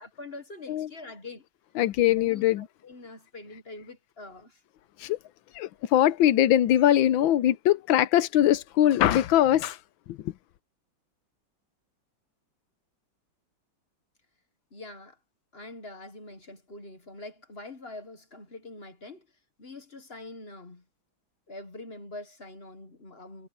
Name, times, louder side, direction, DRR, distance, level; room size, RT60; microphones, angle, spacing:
voice 1, 0.0-1.4 2.2-4.6 14.7-15.2 15.5-19.3 19.6-20.8 21.5-23.5, left 2 dB, 35° left, 1.4 m, -44 dB
voice 2, 1.7-2.7 5.0-5.2 5.5-9.8 10.1-10.3, left 12 dB, 90° left, 1.5 m, -22 dB
omnidirectional pair, 2.1 m